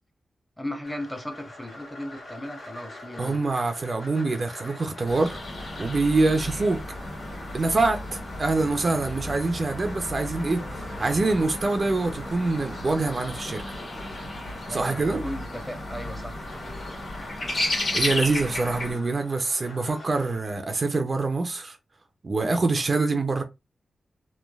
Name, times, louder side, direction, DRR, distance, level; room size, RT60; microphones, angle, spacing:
voice 1, 0.6-3.4 14.7-16.3, left 1 dB, 5° left, 0.7 m, -36 dB
sound 1, 0.8-20.4, left 1 dB, 85° left, 1.5 m, -44 dB
voice 2, 3.2-5.4 5.8-6.8 7.5-10.6 11.0-13.6 14.7-15.2 17.6-21.8 22.2-23.4, right 3 dB, 40° right, 0.4 m, -25 dB
sound 2, 5.1-18.9, left 1 dB, 65° left, 1.5 m, -34 dB
3.1 x 2.2 x 2.2 m
wide cardioid pair, 95°, 0 cm